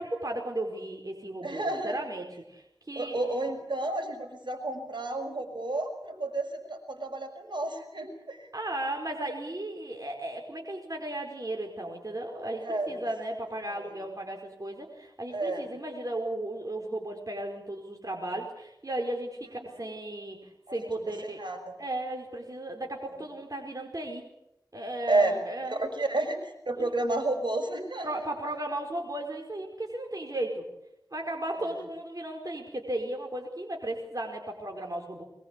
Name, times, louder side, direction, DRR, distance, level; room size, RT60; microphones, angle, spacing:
voice 1, 0.0-3.4 8.5-21.4 21.8-24.2 24.7-25.8 26.7-26.9 28.0-30.7 31.1-35.2, right 1 dB, 45° right, 1 dB, 4.8 m, -35 dB
voice 2, 1.4-1.9 2.9-8.5 12.6-13.0 13.8-13.9 15.3-15.7 21.2-21.8 25.1-25.3 25.7-28.1 31.6-31.7, right 2 dB, 70° right, 4 dB, 6.4 m, -31 dB
24.0 x 22.0 x 8.3 m, 0.85 s
wide cardioid pair, 45°, 8 cm